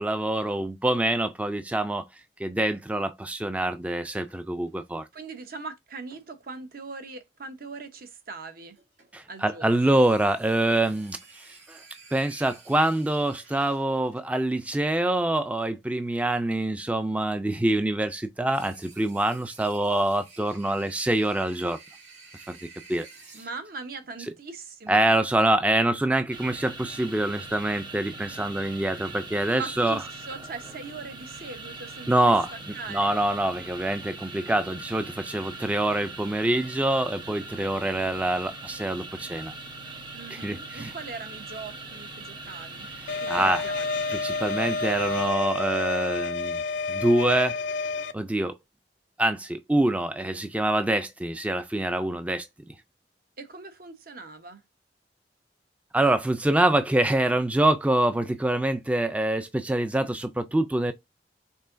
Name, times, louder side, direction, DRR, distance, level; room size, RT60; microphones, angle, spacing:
voice 1, 0.0-2.1 2.4-5.1 9.1-11.8 12.1-21.8 22.5-22.6 22.9-23.1 24.9-30.0 32.1-39.5 40.3-40.9 43.0-43.7 44.1-46.6 46.9-47.6 48.1-48.5 49.2-52.5 55.9-60.9, right 1 dB, 10° right, 0.3 m, -25 dB
sound 1, 4.2-4.8 6.1-6.7 8.8-9.2 9.7-14.2 18.5-23.5, right 4 dB, 90° right, 2.2 m, -52 dB
voice 2, 5.1-8.8 9.3-10.0 23.3-25.1 29.5-32.3 32.7-33.1 40.1-42.9 43.2-44.0 53.4-54.6, right 4 dB, 55° right, 0.8 m, -40 dB
sound 2, 26.3-45.3, right 2 dB, 25° right, 0.8 m, -41 dB
sound 3, 43.1-48.1, left 4 dB, 80° left, 0.5 m, -29 dB
5.5 x 3.7 x 2.5 m
head